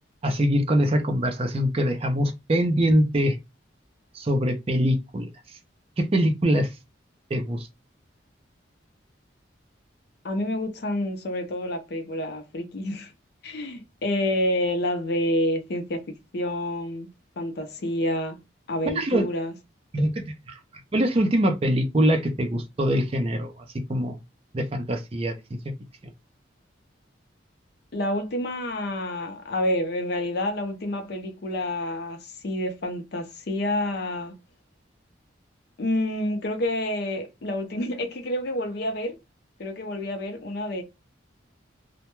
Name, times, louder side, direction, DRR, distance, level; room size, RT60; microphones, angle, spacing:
voice 1, 0.2-3.4 4.1-5.3 6.0-6.7 7.3-7.7 19.0-19.3 19.9-20.5 20.9-23.5 23.9-24.2 24.5-25.6, equal, 30° right, 0.4 m, -23 dB
voice 2, 10.2-13.1 13.4-17.1 17.4-18.4 18.7-19.5 27.9-34.3 35.8-39.2 39.6-40.8, left 1 dB, 55° left, 0.5 m, -28 dB
2.1 x 2.1 x 2.9 m
head